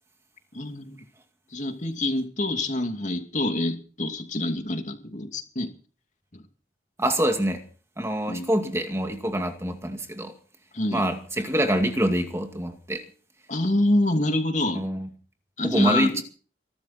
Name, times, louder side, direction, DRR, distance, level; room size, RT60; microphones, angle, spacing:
voice 1, 0.5-1.0 1.5-5.7 6.3-6.4 8.3-8.5 10.7-11.1 13.5-14.8 15.6-16.2, left 1 dB, 45° left, 2.6 m, -26 dB
voice 2, 7.0-7.6 8.0-10.3 10.9-13.0 14.7-15.1 15.6-16.2, right 1 dB, 15° right, 2.3 m, -25 dB
23.0 x 13.0 x 4.4 m
head